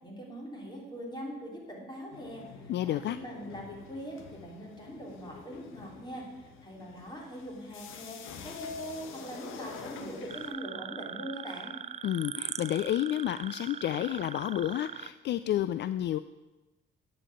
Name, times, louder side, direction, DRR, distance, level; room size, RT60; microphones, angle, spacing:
voice 1, 0.0-11.8, equal, 20° left, -1 dB, 3.4 m, -42 dB
sound 1, 2.1-10.5, left 6 dB, 90° left, 1.1 m, -46 dB
voice 2, 2.7-3.2 12.0-16.2, left 12 dB, 60° left, 13 dB, 0.4 m, -30 dB
sound 2, 10.3-15.1, right 8 dB, 35° right, 0.4 m, -41 dB
9.9 x 5.4 x 8.4 m, 1.1 s
cardioid pair, 90°, 20 cm